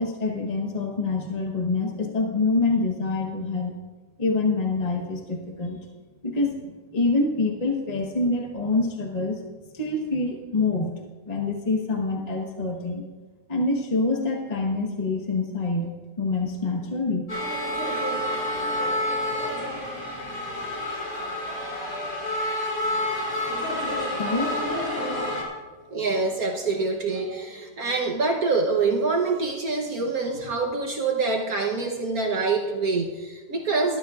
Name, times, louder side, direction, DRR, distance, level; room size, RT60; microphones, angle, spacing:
voice 1, 0.0-3.7 4.2-5.8 6.2-9.4 9.7-10.9 11.3-13.0 13.5-15.9 16.2-17.3 24.2-24.6, left 3 dB, 25° left, 1 dB, 1.2 m, -26 dB
sound 1, 17.3-25.4, left 1 dB, 70° left, 3.8 m, -28 dB
voice 2, 25.9-34.0, right 3 dB, 60° right, 1 dB, 1.4 m, -25 dB
20.0 x 12.5 x 2.5 m, 1.3 s
omnidirectional pair, 1.9 m